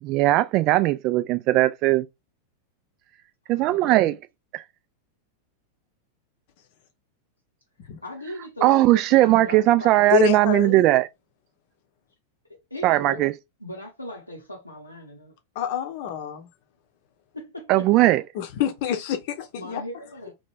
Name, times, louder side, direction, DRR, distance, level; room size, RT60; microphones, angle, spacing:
voice 1, 0.0-2.1 3.5-4.1 8.6-11.1 12.8-13.3 17.7-18.2, right 16 dB, 40° right, 0.3 m, -19 dB
voice 2, 3.5-4.2 8.0-10.0 12.5-13.2 13.6-15.3 17.3-17.9 19.5-20.3, left 1 dB, 85° left, 0.6 m, -38 dB
voice 3, 10.1-10.8 15.6-16.5 18.3-19.8, left 11 dB, 50° left, 0.6 m, -27 dB
2.9 x 2.1 x 3.3 m
figure-of-eight pair, 90°, 0 cm